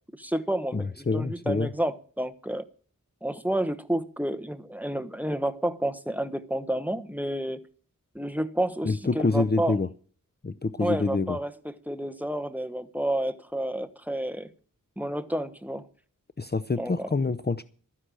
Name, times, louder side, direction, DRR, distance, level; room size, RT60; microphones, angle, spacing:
voice 1, 0.2-2.6 3.2-7.6 8.1-9.8 10.8-14.5 15.0-15.8 16.8-17.1, right 1 dB, 5° right, 1.1 m, -30 dB
voice 2, 0.7-1.7 8.8-9.9 10.4-11.4 16.4-17.6, left 3 dB, 30° left, 0.6 m, -26 dB
13.0 x 10.0 x 6.3 m
wide cardioid pair, 45°, 33 cm